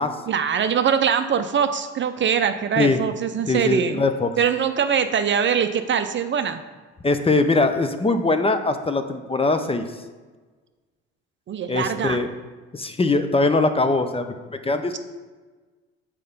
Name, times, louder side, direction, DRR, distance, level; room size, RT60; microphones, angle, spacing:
voice 1, 0.3-4.0 4.4-6.6 11.5-12.2, right 7 dB, 40° right, 9 dB, 0.5 m, -22 dB
voice 2, 3.5-4.3 7.0-9.9 11.7-12.3 12.7-15.0, left 3 dB, 20° left, 8 dB, 0.6 m, -21 dB
6.5 x 4.5 x 5.4 m, 1.3 s
supercardioid pair, 65°, 30 cm